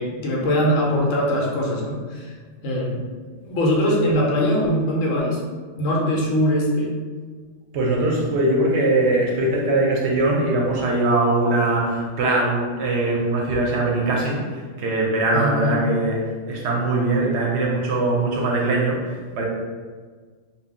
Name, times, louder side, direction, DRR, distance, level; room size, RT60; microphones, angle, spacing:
voice 1, 0.0-2.3 2.6-3.0 3.4-5.4 5.8-7.0 15.3-15.8, equal, 80° left, -2 dB, 1.0 m, -22 dB
voice 2, 7.7-14.4 14.8-16.2 16.5-19.0 19.3-19.5, right 2 dB, 65° right, -1 dB, 0.8 m, -21 dB
2.6 x 2.3 x 3.5 m, 1.5 s
omnidirectional pair, 1.3 m